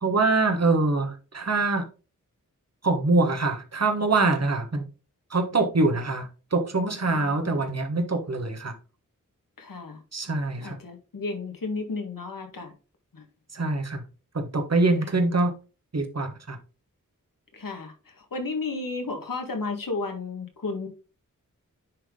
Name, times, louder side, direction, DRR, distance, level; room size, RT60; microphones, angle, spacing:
voice 1, 0.0-1.9 2.8-4.9 5.3-8.7 10.1-10.8 13.5-14.0 14.3-15.5 15.9-16.6, right 3 dB, 50° right, 1.4 m, -24 dB
voice 2, 7.0-7.6 9.6-10.0 10.5-12.7 13.1-13.3 17.5-20.9, left 3 dB, 80° left, 1.8 m, -33 dB
9.9 x 3.7 x 3.8 m
wide cardioid pair, 50°, 33 cm